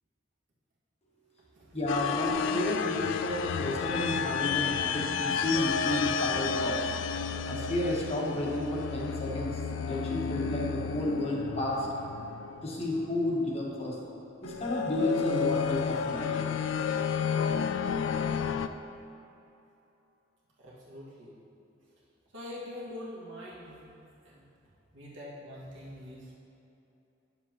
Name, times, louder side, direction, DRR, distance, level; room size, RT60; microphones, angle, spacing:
voice 1, 1.7-6.9 7.4-9.6 9.9-11.9 12.6-14.0 14.4-16.6, left 1 dB, 35° left, -3 dB, 1.2 m, -31 dB
sound 1, 1.9-13.2 14.4-18.7, left 6 dB, 80° left, 0.3 m, -31 dB
voice 2, 20.6-21.4 22.3-23.9 24.2-24.5 24.9-26.5, left 1 dB, 80° right, -6 dB, 1.9 m, -44 dB
9.7 x 6.9 x 3.0 m, 2.8 s
head